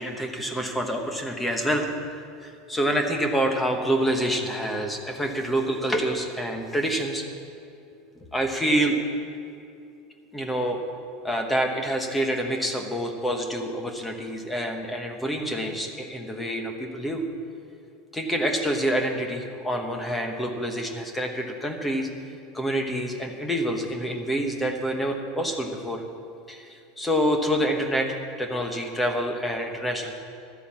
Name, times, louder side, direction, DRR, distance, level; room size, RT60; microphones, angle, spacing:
voice 1, 0.0-1.9 2.4-7.2 8.3-9.0 10.3-10.8 11.2-17.2 18.1-22.1 22.5-26.0 26.5-30.2, equal, 5° left, 4 dB, 1.0 m, -27 dB
12.5 x 9.8 x 7.3 m, 2.5 s
supercardioid pair, 180°, 0 cm